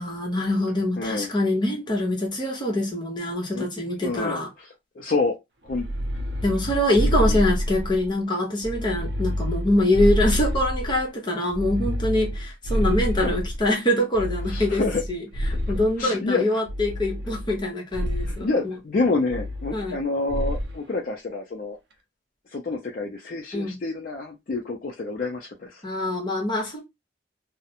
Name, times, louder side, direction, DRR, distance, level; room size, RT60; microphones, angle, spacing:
voice 1, 0.0-4.5 6.4-14.8 15.1-15.2 15.7-18.5 19.7-20.0 23.5-23.8 25.8-26.8, left 1 dB, 25° left, 0.8 m, -24 dB
voice 2, 1.0-1.3 3.5-3.7 4.0-5.4 5.6-5.9 7.1-7.4 13.2-13.4 14.5-15.0 16.0-16.6 18.3-21.8 22.5-25.8, left 3 dB, 45° left, 0.4 m, -28 dB
sound 1, 5.7-8.1 8.6-11.0 11.5-13.7 14.1-16.0 16.7-17.6 17.9-18.4 19.3-20.0 20.3-20.8, equal, 65° right, 0.5 m, -27 dB
2.4 x 2.0 x 2.8 m
head